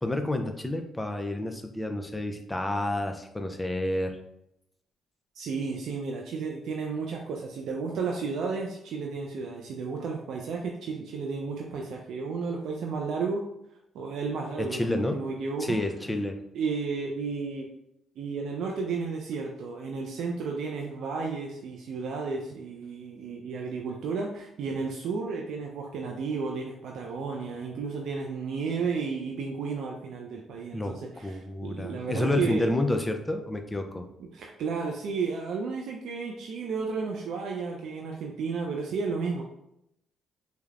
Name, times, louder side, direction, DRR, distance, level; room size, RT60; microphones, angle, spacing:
voice 1, 0.0-4.2 14.6-15.2 15.6-16.4 30.7-31.0 31.2-34.1, left 1 dB, 15° left, 5 dB, 0.4 m, -29 dB
voice 2, 5.3-13.4 13.9-15.8 16.5-17.7 18.2-32.7 34.3-39.4, right 4 dB, 75° right, 0 dB, 0.3 m, -33 dB
3.2 x 2.0 x 2.4 m, 0.81 s
cardioid pair, 90°, 0 cm